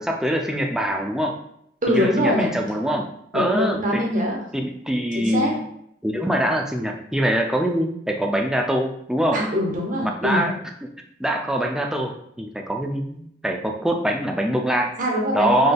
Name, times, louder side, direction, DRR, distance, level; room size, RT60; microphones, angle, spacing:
voice 1, 0.0-1.4 1.9-4.0 4.5-5.6 6.0-9.4 10.0-10.6 11.2-14.9 15.3-15.7, equal, 5° right, 2 dB, 0.3 m, -24 dB
voice 2, 1.8-2.5 3.3-4.4 5.1-5.5 9.3-10.4 15.0-15.7, equal, 45° right, -1 dB, 0.8 m, -23 dB
4.1 x 3.3 x 2.2 m, 0.72 s
head